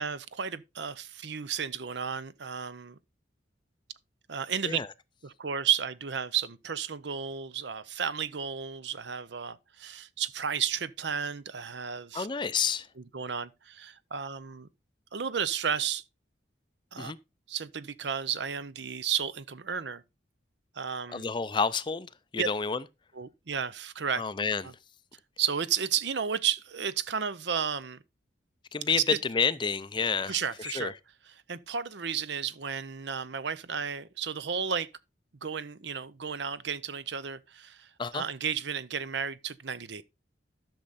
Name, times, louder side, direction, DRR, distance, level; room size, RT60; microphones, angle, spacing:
voice 1, 0.0-3.0 4.3-4.8 5.2-12.3 13.1-14.7 15.1-16.0 16.9-17.1 17.5-20.0 20.7-21.3 22.4-22.5 23.2-24.2 25.4-28.0 30.3-30.9 31.5-34.9 35.4-40.0, right 7 dB, 70° right, 0.7 m, -33 dB
voice 2, 12.1-12.9 17.0-17.2 21.1-22.8 24.2-24.7 28.7-30.9 38.0-38.2, left 5 dB, 25° left, 0.4 m, -29 dB
12.0 x 6.5 x 4.1 m
head